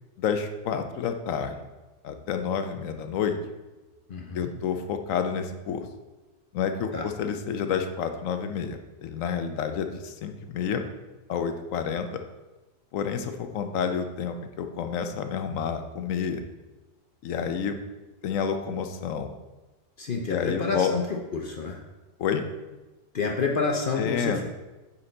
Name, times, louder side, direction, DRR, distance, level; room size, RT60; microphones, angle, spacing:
voice 1, 0.2-1.6 2.0-3.4 4.3-5.9 6.5-10.9 11.3-12.2 12.9-16.4 17.2-17.8 18.2-19.3 20.3-20.9 22.2-22.4 24.0-24.4, left 7 dB, 85° left, 7 dB, 1.1 m, -29 dB
voice 2, 4.1-4.5 6.9-7.0 20.0-21.0 21.3-21.8 23.1-24.4, left 4 dB, 50° left, 1 dB, 0.7 m, -28 dB
9.6 x 4.4 x 3.9 m, 1.1 s
omnidirectional pair, 1.3 m